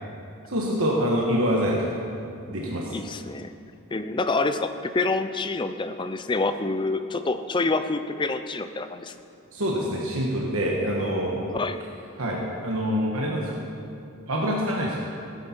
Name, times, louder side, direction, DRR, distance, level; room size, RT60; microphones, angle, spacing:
voice 1, 0.5-2.0 2.5-2.9 9.5-11.4 12.2-13.6 14.3-15.0, equal, 65° right, -2 dB, 1.3 m, -25 dB
voice 2, 2.9-3.5 3.9-9.1 11.5-11.8, left 3 dB, 20° left, 9 dB, 0.4 m, -27 dB
16.5 x 9.6 x 4.5 m, 2.6 s
head